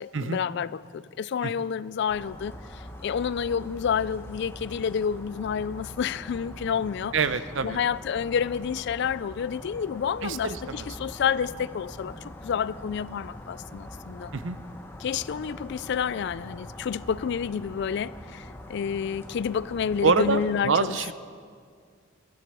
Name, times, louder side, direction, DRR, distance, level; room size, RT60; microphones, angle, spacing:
voice 1, 0.0-7.1 7.6-14.3 15.0-21.1, left 7 dB, 60° left, 19 dB, 0.3 m, -29 dB
sound 1, 2.1-20.6, left 1 dB, 10° left, 1.1 m, -43 dB
voice 2, 7.1-7.8 10.2-10.9 14.3-14.6 20.0-21.1, right 5 dB, 70° right, 13 dB, 0.7 m, -26 dB
13.0 x 12.5 x 6.9 m, 2.1 s
head